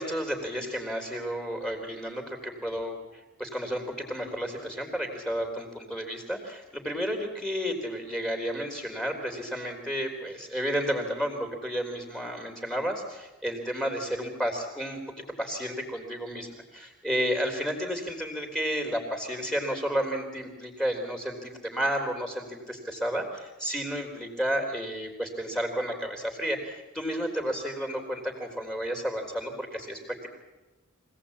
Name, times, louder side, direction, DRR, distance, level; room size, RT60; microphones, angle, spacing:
voice 1, 0.0-3.0 3.4-15.0 15.4-30.3, equal, 5° left, 2 dB, 3.6 m, -32 dB
24.5 x 17.5 x 8.7 m, 1.1 s
head